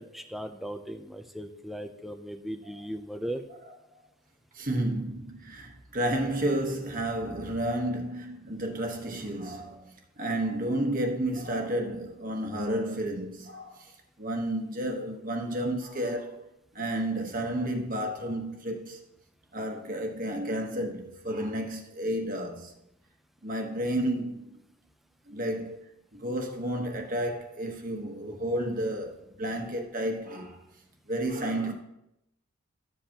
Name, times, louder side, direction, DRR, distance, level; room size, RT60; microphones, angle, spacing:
voice 1, 0.0-3.4, equal, ahead, 0.5 m, -37 dB
voice 2, 4.5-13.9 14.2-16.4 16.7-19.0 19.5-22.7 23.4-24.6 25.3-25.8 26.1-30.6 31.1-31.7, right 1 dB, 40° right, 1.2 m, -31 dB
13.0 x 7.7 x 2.9 m
head